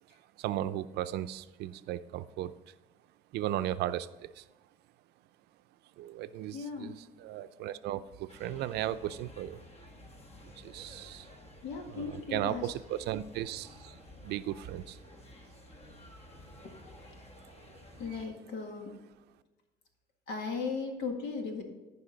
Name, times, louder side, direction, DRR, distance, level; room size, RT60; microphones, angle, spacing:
voice 1, 0.4-2.7 3.3-4.4 6.0-9.6 10.6-11.3 11.9-15.0, right 12 dB, 75° right, 13 dB, 0.5 m, -36 dB
voice 2, 6.5-7.0 11.6-12.7 16.6-16.7 18.0-18.9 20.3-21.6, left 4 dB, 85° left, 3 dB, 1.8 m, -37 dB
sound 1, 8.3-18.2, left 1 dB, 40° left, 1.4 m, -53 dB
14.0 x 5.4 x 3.9 m, 1.2 s
cardioid pair, 110°, 17 cm